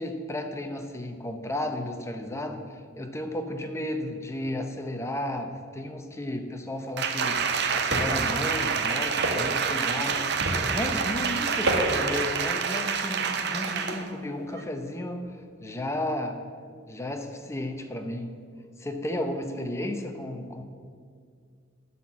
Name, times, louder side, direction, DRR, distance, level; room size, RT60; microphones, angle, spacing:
voice 1, 0.0-10.2 10.7-16.4 16.9-18.3 18.8-20.6, left 1 dB, 15° left, 5 dB, 0.7 m, -33 dB
Applause, 7.0-14.1 14.5-14.6, right 6 dB, 55° right, 0.7 m, -27 dB
sound 1, 7.2-12.2, right 1 dB, 85° right, 2.0 m, -32 dB
12.0 x 4.4 x 7.3 m, 2.2 s
head